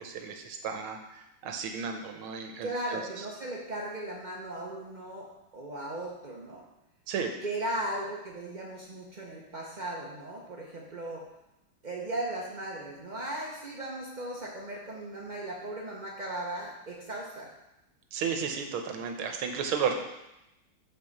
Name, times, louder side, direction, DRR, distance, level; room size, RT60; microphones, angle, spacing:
voice 1, 0.0-3.3 7.1-7.4 18.1-19.9, right 6 dB, 90° right, 4 dB, 1.7 m, -33 dB
voice 2, 2.6-5.3 5.5-6.6 7.4-11.2 11.8-17.5, right 1 dB, 70° right, -3 dB, 0.4 m, -37 dB
5.6 x 5.0 x 6.5 m, 0.90 s
omnidirectional pair, 2.3 m